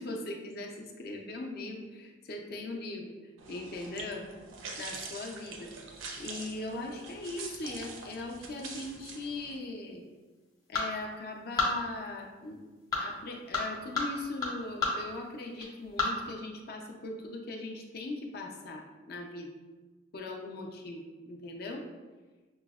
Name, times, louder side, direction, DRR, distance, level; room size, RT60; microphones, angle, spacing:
voice 1, 0.0-3.1 3.5-4.3 4.8-5.7 6.2-10.0 10.7-12.6 13.0-19.5 20.1-21.9, left 2 dB, 50° left, 1 dB, 0.5 m, -39 dB
sound 1, 3.4-9.6, right 4 dB, 90° right, 0.5 m, -45 dB
sound 2, 5.9-16.3, left 3 dB, 20° left, 0.8 m, -37 dB
6.0 x 2.0 x 2.3 m, 1.3 s
head